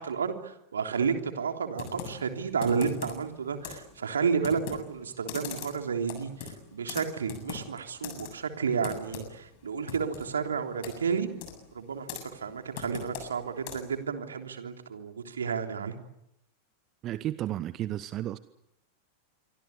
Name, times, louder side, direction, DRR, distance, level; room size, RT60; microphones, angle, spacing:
voice 1, 0.0-11.3 11.7-15.9, right 6 dB, 70° right, 4 dB, 3.4 m, -31 dB
Computer keyboard, 1.7-14.0, left 7 dB, 45° left, 7.5 m, -43 dB
voice 2, 17.0-18.4, right 13 dB, 35° right, 15 dB, 1.0 m, -33 dB
26.5 x 24.5 x 8.5 m, 0.82 s
figure-of-eight pair, 90°, 0 cm